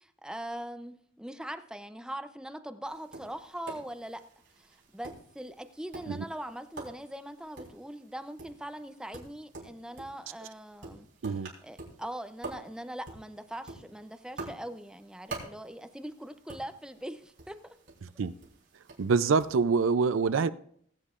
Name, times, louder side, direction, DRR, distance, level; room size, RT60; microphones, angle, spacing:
voice 1, 0.0-4.2 4.6-11.1 11.6-17.8, right 1 dB, 5° right, 9 dB, 0.5 m, -41 dB
Tap, 2.9-19.6, right 3 dB, 65° right, 3.7 m, -48 dB
voice 2, 18.0-18.3 19.0-20.5, right 5 dB, 80° right, 14 dB, 0.5 m, -26 dB
20.0 x 8.3 x 2.5 m, 0.63 s
head